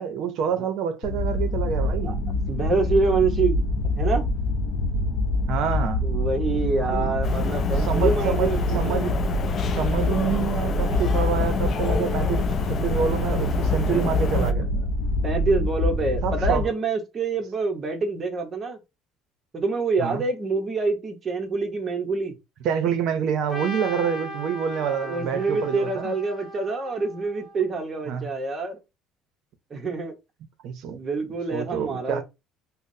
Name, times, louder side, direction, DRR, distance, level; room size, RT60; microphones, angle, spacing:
voice 1, 0.0-2.2 5.5-6.1 6.8-7.2 7.8-9.2 9.7-14.7 16.2-16.7 20.0-20.2 22.6-26.1 28.1-28.3 30.6-31.0 31.5-32.2, right 8 dB, 60° right, 0.6 m, -27 dB
sound 1, 1.0-16.7, left 2 dB, 70° left, 0.6 m, -25 dB
voice 2, 2.5-3.7 4.0-4.3 6.0-9.2 10.1-10.2 15.2-18.8 19.5-22.3 25.0-28.8 29.7-30.1 30.9-32.2, right 4 dB, 25° right, 0.8 m, -26 dB
sound 2, 7.2-14.5, left 6 dB, 35° left, 0.3 m, -29 dB
Trumpet, 23.5-27.6, left 1 dB, 15° left, 1.5 m, -38 dB
5.5 x 2.0 x 2.6 m
cardioid pair, 155°, 0 cm